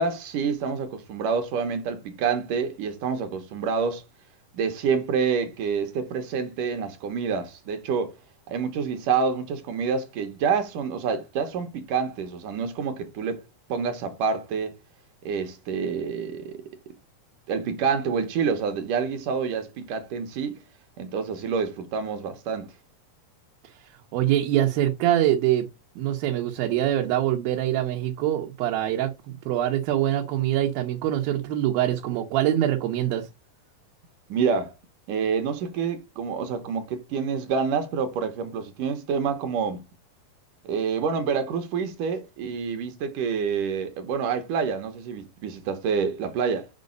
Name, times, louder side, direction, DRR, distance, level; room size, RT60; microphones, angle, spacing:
voice 1, 0.0-4.0 4.5-8.1 8.5-13.4 13.7-14.8 15.3-16.6 17.5-20.6 21.0-22.7 34.3-34.7 35.1-39.8 40.6-46.7, right 6 dB, 70° right, 2.5 m, -27 dB
voice 2, 24.1-25.7 26.0-33.3, right 12 dB, 90° right, 2.8 m, -24 dB
7.4 x 5.3 x 5.3 m
omnidirectional pair, 4.1 m